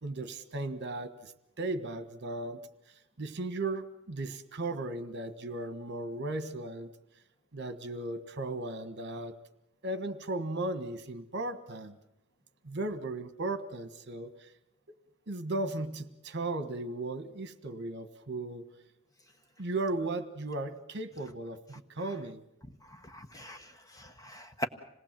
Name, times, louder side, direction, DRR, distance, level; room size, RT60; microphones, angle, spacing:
voice 1, 0.0-1.3 1.6-2.6 3.2-6.9 7.5-9.4 9.8-12.0 12.6-14.5 15.3-18.6 19.6-22.4, right 2 dB, 50° right, 11 dB, 1.5 m, -36 dB
voice 2, 22.9-24.7, equal, 15° left, 8 dB, 1.1 m, -40 dB
26.5 x 19.0 x 7.6 m, 0.88 s
head